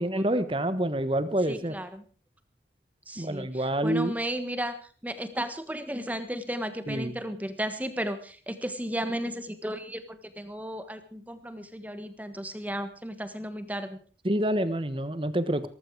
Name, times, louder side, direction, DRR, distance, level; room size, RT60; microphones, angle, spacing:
voice 1, 0.0-1.8 3.2-4.1 6.9-7.2 14.2-15.7, right 1 dB, 30° right, 13 dB, 1.2 m, -27 dB
voice 2, 1.5-2.0 3.1-3.5 3.8-4.7 5.0-14.0, equal, 10° right, 10 dB, 1.4 m, -34 dB
18.0 x 15.0 x 4.8 m, 0.40 s
head